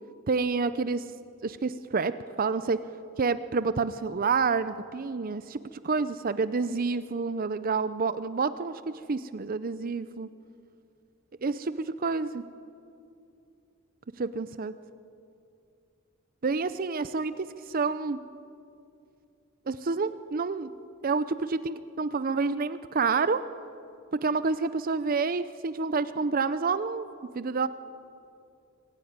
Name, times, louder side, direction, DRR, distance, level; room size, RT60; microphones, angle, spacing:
voice 1, 0.3-1.0 1.4-2.8 3.2-10.3 11.4-12.4 14.2-14.7 16.4-18.2 19.7-20.7 21.0-23.5 24.1-27.1 27.3-27.7, right 4 dB, 40° right, 13 dB, 0.5 m, -28 dB
25.0 x 16.0 x 9.5 m, 2.6 s
head